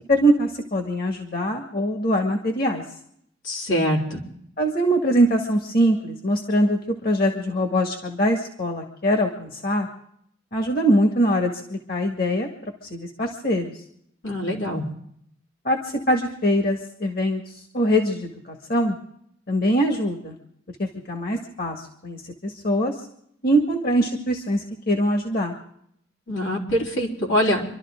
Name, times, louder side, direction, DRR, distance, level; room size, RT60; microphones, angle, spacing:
voice 1, 0.1-2.8 4.6-9.9 10.5-12.5 12.9-13.7 15.6-19.0 19.5-20.3 20.8-22.9 23.4-25.5, equal, 50° left, 3 dB, 1.9 m, -23 dB
voice 2, 3.5-4.2 14.2-14.8 26.3-27.6, equal, 90° left, -2 dB, 4.2 m, -24 dB
27.0 x 12.5 x 3.8 m, 0.70 s
head